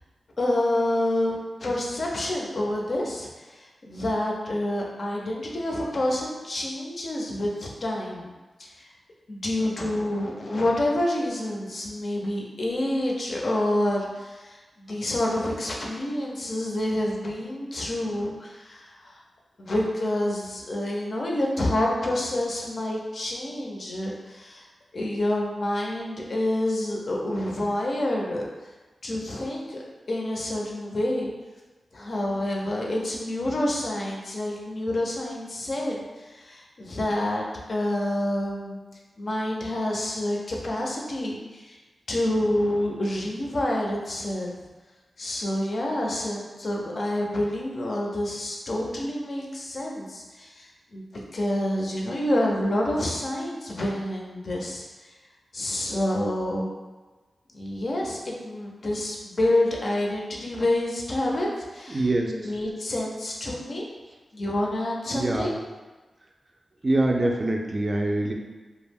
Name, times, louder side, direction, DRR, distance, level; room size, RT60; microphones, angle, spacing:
voice 1, 0.4-8.3 8.6-8.9 9.3-19.2 19.6-24.7 24.9-28.5 29.0-31.3 31.9-38.8 39.2-41.8 42.1-44.6 45.2-51.0 51.3-55.1 55.5-56.7 57.5-63.9 64.3-65.5, left 1 dB, 60° left, -2 dB, 0.5 m, -28 dB
voice 2, 61.9-62.5 65.1-65.5 66.8-68.3, right 2 dB, 40° right, 1 dB, 0.3 m, -24 dB
2.3 x 2.0 x 3.4 m, 1.2 s
wide cardioid pair, 75°, 0 cm